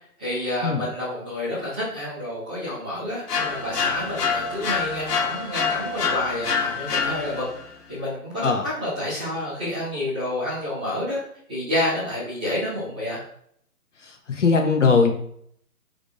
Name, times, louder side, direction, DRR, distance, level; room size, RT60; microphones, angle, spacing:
voice 1, 0.2-7.4 7.9-11.2 11.5-13.2, left 1 dB, 5° right, -13 dB, 0.6 m, -29 dB
sound 1, 3.3-7.6, left 5 dB, 85° left, 0.9 m, -26 dB
voice 2, 14.0-15.1, left 4 dB, 50° left, 3 dB, 0.8 m, -20 dB
5.1 x 3.6 x 2.3 m, 0.66 s
figure-of-eight pair, 140°, 47 cm